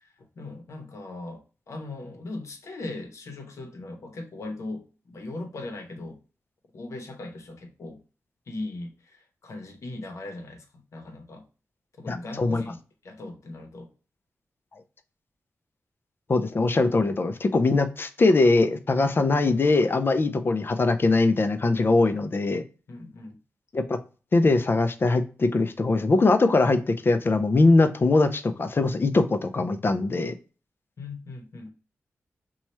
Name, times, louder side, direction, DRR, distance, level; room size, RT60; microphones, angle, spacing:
voice 1, 0.0-6.2 6.7-8.0 8.5-11.4 12.0-13.9 22.9-23.4 31.0-31.7, left 2 dB, 70° left, 4 dB, 0.9 m, -39 dB
voice 2, 12.1-12.6 16.3-22.6 23.7-24.0 24.3-30.3, left 3 dB, 45° left, 9 dB, 0.5 m, -22 dB
3.0 x 2.3 x 4.2 m, 0.35 s
cardioid pair, 60°, 5 cm